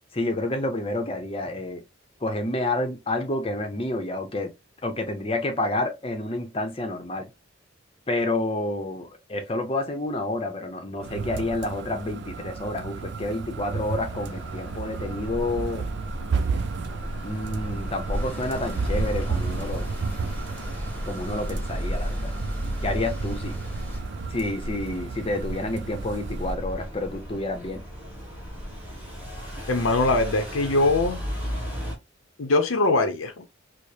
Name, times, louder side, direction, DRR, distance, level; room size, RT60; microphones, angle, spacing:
voice 1, 0.1-1.8 2.2-4.5 4.8-7.3 8.1-15.9 17.2-19.9 21.1-22.3 22.8-23.6 24.3-27.8, left 2 dB, 30° left, 0.7 m, -29 dB
sound 1, 11.0-26.5, right 5 dB, 55° right, 0.4 m, -33 dB
sound 2, 13.6-32.0, equal, 10° right, 1.4 m, -35 dB
sound 3, 18.1-24.0, equal, 10° left, 1.0 m, -35 dB
voice 2, 29.7-31.2 32.4-33.4, left 2 dB, 85° left, 0.7 m, -22 dB
4.8 x 2.1 x 2.7 m
head